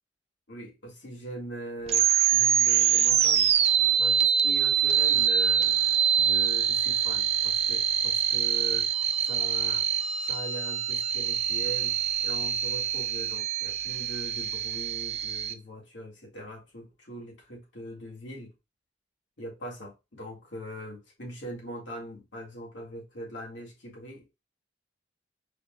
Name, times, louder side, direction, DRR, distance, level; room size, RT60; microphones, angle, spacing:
voice 1, 0.5-3.5 4.0-5.8 6.2-8.9 9.3-9.9 10.3-12.0 12.2-18.5 19.4-24.2, right 1 dB, 85° left, 2.0 m, -41 dB
sound 1, 1.9-15.5, right 9 dB, 35° right, 0.4 m, -25 dB
4.7 x 3.1 x 2.4 m
head